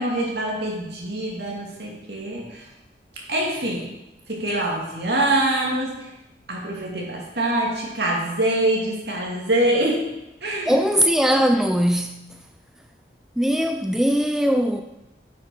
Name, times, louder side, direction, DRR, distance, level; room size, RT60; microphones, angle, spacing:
voice 1, 0.0-2.7 3.3-3.9 4.3-6.1 6.5-10.1 10.4-10.8, right 1 dB, 70° right, 2.6 m, -24 dB
voice 2, 10.7-12.2 13.4-14.8, equal, 5° right, 0.4 m, -20 dB
9.5 x 6.3 x 5.4 m
head